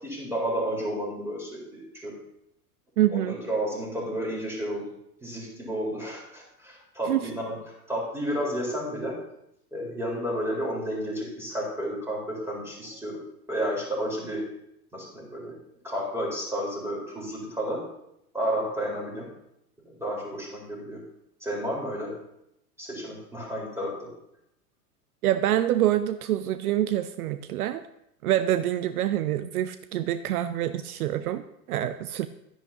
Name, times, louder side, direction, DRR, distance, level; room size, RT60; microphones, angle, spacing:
voice 1, 0.0-2.1 3.1-4.8 5.2-9.1 9.7-13.2 13.5-14.4 14.9-15.5 15.8-17.8 18.3-19.3 20.0-21.0 21.4-22.1 22.8-24.1, equal, 5° right, -3 dB, 4.4 m, -31 dB
voice 2, 3.0-3.4 7.1-7.3 25.2-27.8 28.2-32.3, right 12 dB, 70° right, 12 dB, 0.6 m, -26 dB
11.0 x 10.5 x 2.9 m, 0.79 s
hypercardioid pair, 90°, 46 cm